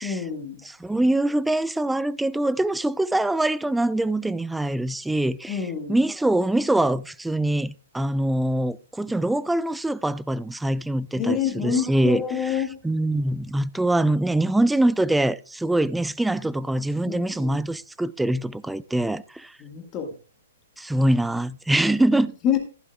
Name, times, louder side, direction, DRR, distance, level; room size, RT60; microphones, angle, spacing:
voice 1, 0.0-0.6 5.5-6.0 11.2-12.8 17.0-17.6 19.6-20.1 22.4-22.6, left 7 dB, 25° left, 1.9 m, -27 dB
voice 2, 0.7-5.6 5.9-19.5 20.8-22.3, right 1 dB, 5° right, 0.4 m, -24 dB
15.0 x 11.0 x 2.4 m
figure-of-eight pair, 115°, 0 cm